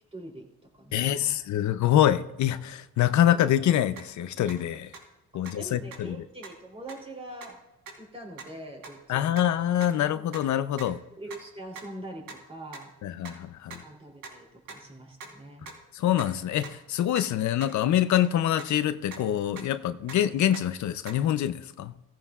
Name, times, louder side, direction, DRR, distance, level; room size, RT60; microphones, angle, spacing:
voice 1, 0.1-0.5 0.7-1.4 5.6-7.6 8.0-9.5 10.1-10.3 11.2-12.9 13.7-15.7, right 1 dB, 20° right, 3.1 m, -43 dB
voice 2, 0.9-4.9 5.3-6.2 9.1-11.0 13.0-13.8 15.9-21.9, left 11 dB, 70° left, 0.7 m, -25 dB
sound 1, 4.0-4.1 4.5-4.6 4.9-5.0 5.5-5.6 5.9-6.0 6.4-6.5 6.9-7.0 7.4-7.5 7.9-8.0 8.4-8.5 8.8-8.9 9.4-9.5 9.8-9.9 10.3-10.4 10.8-10.9 11.3-11.4 11.8-11.9 12.3-12.4 12.7-12.8 13.3-13.4 13.7-13.8 14.2-14.3 14.7-14.8 15.2-15.3 15.7-15.8 16.2-16.3 16.6-16.7 17.2-17.3 17.6-17.7 18.1-18.2 18.6-18.7 19.1-19.2 19.6-19.7 20.1-20.2 20.5-20.6 21.1-21.2, right 5 dB, 85° right, 3.6 m, -41 dB
16.5 x 15.0 x 2.4 m
cardioid pair, 90°, 30 cm